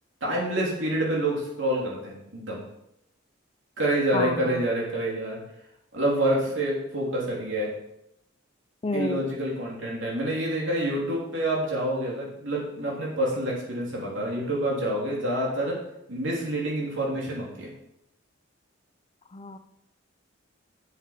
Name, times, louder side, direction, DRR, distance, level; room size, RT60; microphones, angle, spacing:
voice 1, 0.2-2.6 3.8-5.4 5.9-7.7 8.9-15.8 16.1-17.7, right 1 dB, 65° right, -3 dB, 3.4 m, -27 dB
voice 2, 4.1-4.6 8.8-9.2 19.3-19.6, left 2 dB, 30° left, 10 dB, 0.5 m, -30 dB
7.8 x 7.5 x 5.7 m, 0.80 s
head